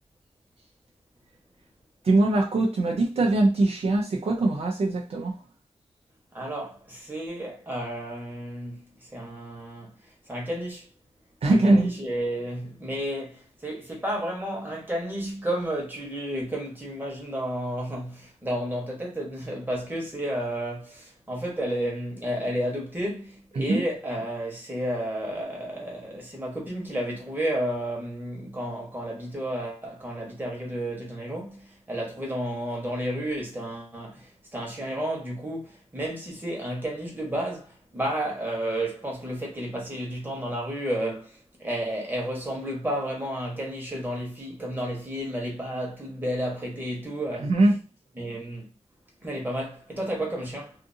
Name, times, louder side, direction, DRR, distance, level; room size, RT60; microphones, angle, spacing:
voice 1, 2.0-5.3 11.4-11.9 23.6-23.8 47.4-47.8, right 2 dB, 60° right, 0.5 m, -22 dB
voice 2, 6.3-9.9 10.3-10.9 11.5-47.5 48.2-48.7 49.2-50.7, right 1 dB, 15° right, 1.1 m, -32 dB
2.6 x 2.5 x 2.6 m
wide cardioid pair, 125°, 12 cm